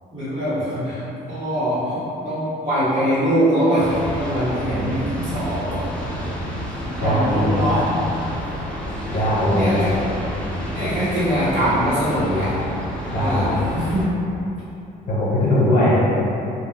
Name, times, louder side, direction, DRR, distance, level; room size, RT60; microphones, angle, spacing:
voice 1, 0.1-1.0 1.3-5.7 6.8-8.0 8.9-9.2 9.5-9.9 10.7-12.5 13.2-14.2, equal, 35° right, -17 dB, 1.1 m, -23 dB
sound 1, 3.8-14.1, equal, 5° left, 0.5 m, -30 dB
voice 2, 7.0-7.6 9.1-9.9 13.1-13.6 15.1-16.0, left 1 dB, 60° left, -9 dB, 1.1 m, -19 dB
2.4 x 2.2 x 3.6 m, 2.9 s
cardioid pair, 110°, 17 cm